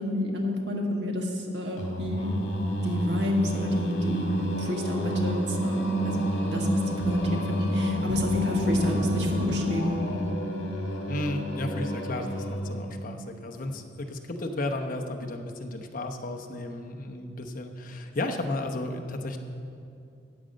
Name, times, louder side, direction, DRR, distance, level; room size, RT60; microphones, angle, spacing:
voice 1, 0.0-2.4 2.8-4.2 4.6-6.2 6.5-10.0, left 1 dB, 70° right, 1 dB, 1.6 m, -29 dB
Singing, 1.8-12.9, equal, 75° left, 1.7 m, -29 dB
voice 2, 11.1-19.4, left 1 dB, 50° left, 4 dB, 0.9 m, -33 dB
12.5 x 5.2 x 8.6 m, 2.5 s
head